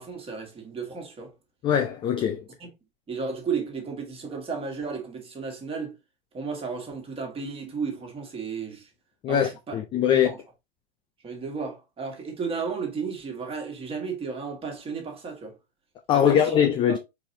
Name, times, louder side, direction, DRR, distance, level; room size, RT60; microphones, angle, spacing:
voice 1, 0.0-1.3 2.6-2.7 3.1-5.9 6.3-8.9 9.3-9.8 10.1-10.4 11.2-15.6 16.1-16.5 16.9-17.0, right 5 dB, 20° right, 1.6 m, -33 dB
voice 2, 1.6-2.4 9.2-10.3 16.1-17.0, left 9 dB, 15° left, 0.4 m, -22 dB
4.7 x 4.0 x 2.7 m
hypercardioid pair, 115°, 32 cm